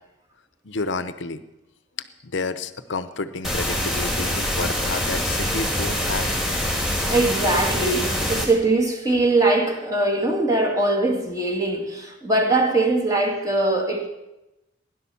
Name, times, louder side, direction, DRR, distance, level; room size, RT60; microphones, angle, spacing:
voice 1, 0.6-1.4 2.2-6.3, left 3 dB, 70° left, 12 dB, 0.8 m, -30 dB
sound 1, 3.4-8.4, left 1 dB, ahead, 2.6 m, -25 dB
voice 2, 6.7-14.1, right 2 dB, 20° right, 2 dB, 2.1 m, -22 dB
16.0 x 11.0 x 7.1 m, 0.97 s
head